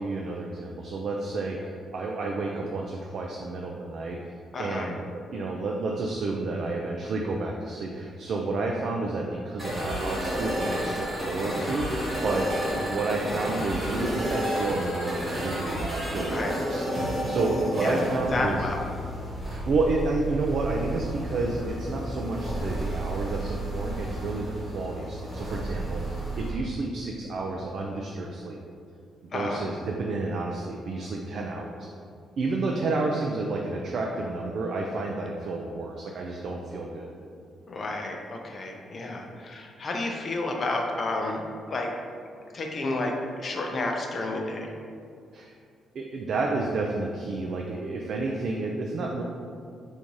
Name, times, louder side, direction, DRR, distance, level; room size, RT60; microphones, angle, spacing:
voice 1, 0.0-4.2 4.6-16.8 17.3-18.6 19.5-28.6 29.3-31.9 32.4-37.1 45.3-45.5 45.9-49.2, right 3 dB, 50° right, 0 dB, 0.3 m, -30 dB
voice 2, 4.5-4.9 16.2-16.5 17.8-18.8 29.3-29.6 37.7-41.4 41.7-41.9 42.5-43.1 43.4-44.7, left 2 dB, 35° left, 1 dB, 0.5 m, -31 dB
sound 1, 9.6-26.5, right 1 dB, 25° right, 1.3 m, -31 dB
3.6 x 2.7 x 4.6 m, 2.3 s
cardioid pair, 155°, 0 cm